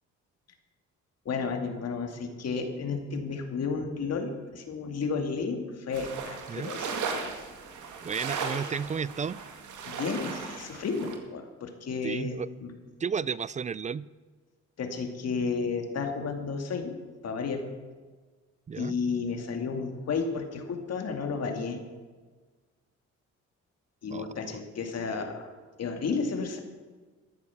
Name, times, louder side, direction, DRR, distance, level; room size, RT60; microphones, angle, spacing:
voice 1, 1.2-7.3 9.8-12.7 14.8-16.9 17.2-17.6 18.8-21.8 24.0-25.5 25.8-26.6, left 5 dB, 55° left, 4 dB, 2.4 m, -32 dB
sound 1, 5.9-11.2, right 5 dB, 75° right, 2.0 m, -37 dB
voice 2, 8.0-9.4 12.0-12.5 13.0-14.1 18.7-18.9 24.1-24.3, right 6 dB, 25° right, 21 dB, 0.3 m, -32 dB
14.0 x 9.6 x 7.0 m, 1.4 s
cardioid pair, 90°, 30 cm